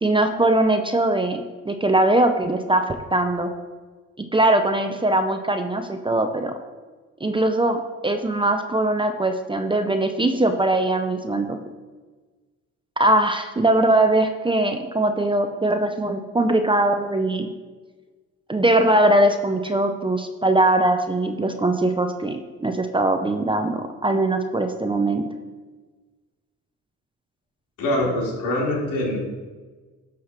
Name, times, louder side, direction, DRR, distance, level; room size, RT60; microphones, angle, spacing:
voice 1, 0.0-3.5 4.3-6.5 7.2-11.6 13.0-17.5 18.5-25.3, right 1 dB, 15° right, 6 dB, 0.7 m, -21 dB
voice 2, 27.8-29.2, left 1 dB, 85° left, -2 dB, 3.1 m, -24 dB
11.5 x 5.0 x 5.8 m, 1.4 s
cardioid pair, 90°, 30 cm